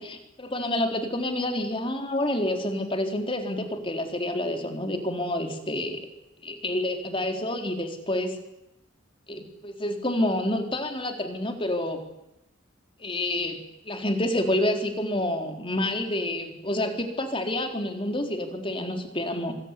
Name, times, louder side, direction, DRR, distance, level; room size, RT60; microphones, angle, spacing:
voice 1, 0.0-6.1 6.4-8.4 9.3-12.0 13.0-13.6 13.8-19.5, left 1 dB, 25° left, 5 dB, 4.0 m, -28 dB
25.0 x 22.0 x 10.0 m, 0.89 s
head